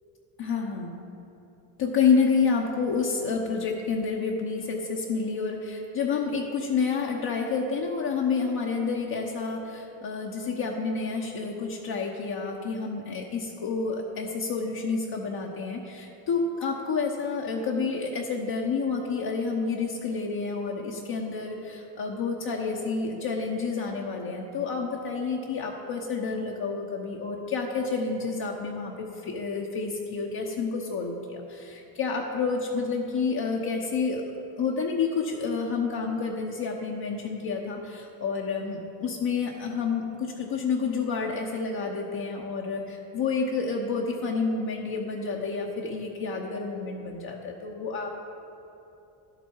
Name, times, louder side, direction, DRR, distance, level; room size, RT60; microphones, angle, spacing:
voice 1, 0.4-1.0 1.8-34.2 34.6-48.2, left 5 dB, 55° left, -2 dB, 1.1 m, -29 dB
11.0 x 7.9 x 4.7 m, 2.8 s
supercardioid pair, 85°, 44 cm